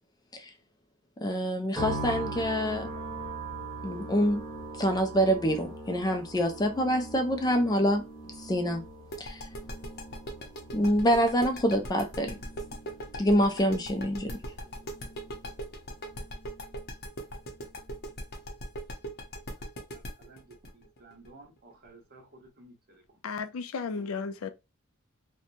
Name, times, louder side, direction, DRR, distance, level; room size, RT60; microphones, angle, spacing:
voice 1, 1.2-2.9 3.8-4.4 4.8-8.1 8.4-8.9 9.2-9.5 10.7-12.4 13.2-14.4, equal, 20° left, 0.3 m, -26 dB
sound 1, 1.8-17.0 17.3-18.1, right 2 dB, ahead, 1.4 m, -42 dB
sound 2, 9.1-21.9, equal, 50° left, 0.7 m, -39 dB
voice 2, 19.9-20.4 20.7-22.7, right 2 dB, 50° right, 1.0 m, -54 dB
voice 3, 23.2-24.5, left 5 dB, 85° left, 0.4 m, -34 dB
2.8 x 2.2 x 2.5 m
head